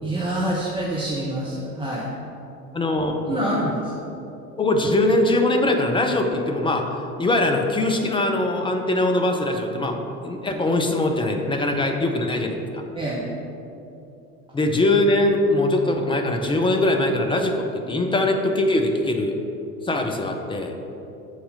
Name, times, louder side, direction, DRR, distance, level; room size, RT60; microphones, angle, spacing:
voice 1, 0.0-2.1 3.3-3.9 12.9-13.2, right 1 dB, 10° right, -7 dB, 1.1 m, -26 dB
voice 2, 2.7-3.4 4.6-6.8 7.2-12.8 14.5-19.3 19.8-20.7, left 2 dB, 10° left, 3 dB, 0.6 m, -22 dB
7.4 x 4.3 x 5.4 m, 2.9 s
figure-of-eight pair, 75°, 45 cm